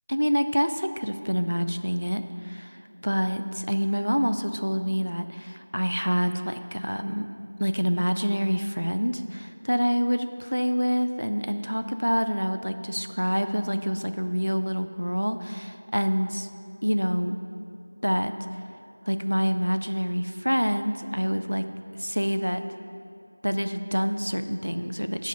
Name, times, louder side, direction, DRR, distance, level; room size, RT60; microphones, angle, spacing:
voice 1, 0.1-7.3 7.6-16.5 16.8-17.4 18.0-18.3 19.1-21.7 22.0-22.6 23.4-25.3, equal, 90° right, 9 dB, 0.4 m, -27 dB
7.6 x 4.9 x 5.4 m, 2.6 s
figure-of-eight pair, 175°, 0 cm